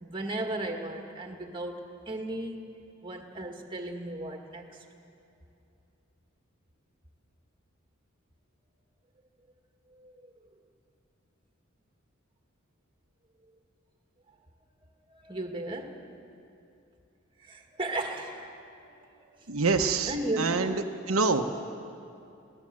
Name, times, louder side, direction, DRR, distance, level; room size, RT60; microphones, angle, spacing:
voice 1, 0.0-2.8 3.0-4.8 9.9-10.3 15.1-16.0 17.4-19.6 20.1-20.6, right 1 dB, 25° right, 3 dB, 2.0 m, -36 dB
voice 2, 19.5-21.4, right 4 dB, 90° right, 4 dB, 1.1 m, -26 dB
23.5 x 17.0 x 7.7 m, 2.7 s
head